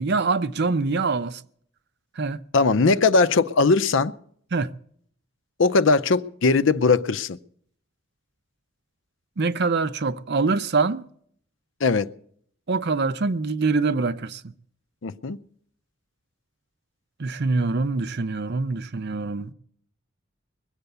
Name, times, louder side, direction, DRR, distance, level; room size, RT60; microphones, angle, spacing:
voice 1, 0.0-1.4 2.2-2.4 4.5-4.7 9.4-11.0 12.7-14.4 17.2-19.5, right 4 dB, 55° right, 0.6 m, -24 dB
voice 2, 2.5-4.1 5.6-7.4 11.8-12.1 15.0-15.4, left 4 dB, 65° left, 0.6 m, -19 dB
21.5 x 8.2 x 6.8 m
head